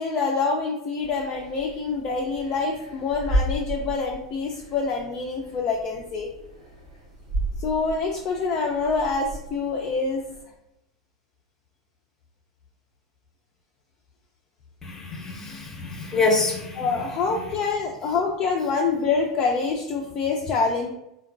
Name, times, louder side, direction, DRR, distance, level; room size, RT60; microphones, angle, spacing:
voice 1, 0.0-6.3 7.6-10.2 16.8-20.9, left 4 dB, 35° left, 0 dB, 0.3 m, -26 dB
sound 1, 1.0-10.4, right 1 dB, 65° right, 0.8 m, -34 dB
voice 2, 14.8-17.1, left 3 dB, 15° left, 0 dB, 0.7 m, -26 dB
3.6 x 2.2 x 2.3 m, 0.86 s
figure-of-eight pair, 85°, 3 cm